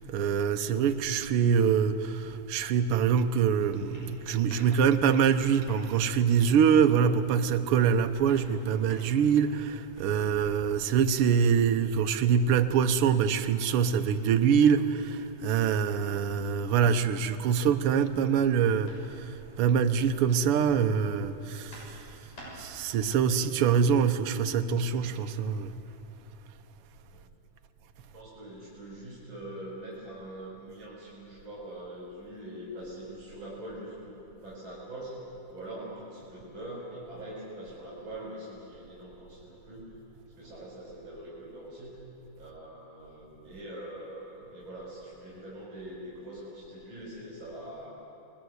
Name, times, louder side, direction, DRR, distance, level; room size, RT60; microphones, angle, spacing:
voice 1, 0.0-22.1 22.5-25.7, right 7 dB, 70° right, 1.3 m, -25 dB
sound 1, 3.2-23.1, equal, 80° left, 8.3 m, -54 dB
voice 2, 28.1-35.2 35.5-39.9 40.4-42.0 42.4-47.9, right 1 dB, 35° right, 6.0 m, -43 dB
29.5 x 21.5 x 8.0 m
omnidirectional pair, 3.6 m